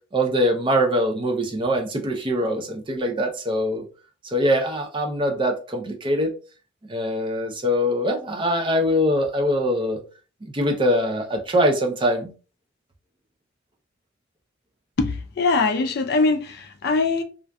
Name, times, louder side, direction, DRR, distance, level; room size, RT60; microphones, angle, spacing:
voice 1, 0.1-3.8 4.2-6.3 6.9-10.0 10.5-12.3, equal, 25° right, 0.5 m, -23 dB
voice 2, 15.0-17.2, left 3 dB, 55° left, 0.4 m, -22 dB
2.5 x 2.4 x 2.2 m
head